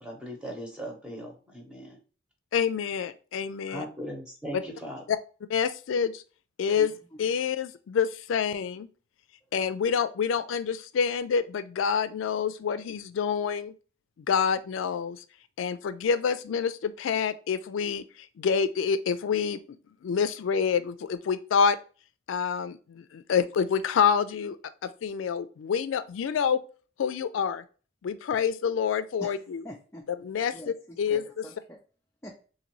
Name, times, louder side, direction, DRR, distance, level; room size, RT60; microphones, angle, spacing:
voice 1, 0.0-2.0 3.7-5.0, equal, 5° right, 1.0 m, -39 dB
voice 2, 2.5-3.9 4.5-4.6 5.1-5.2 5.5-6.2 6.6-6.9 7.2-8.9 9.5-13.7 14.2-15.2 15.6-19.6 20.0-21.8 22.3-24.6 24.8-26.6 27.0-27.6 28.0-29.6 30.2-31.4, left 6 dB, 85° left, 0.3 m, -27 dB
voice 3, 6.7-7.2 29.2-29.3 29.6-30.1 30.5-31.8 32.2-32.4, left 1 dB, 15° left, 0.4 m, -44 dB
3.9 x 2.6 x 2.9 m
head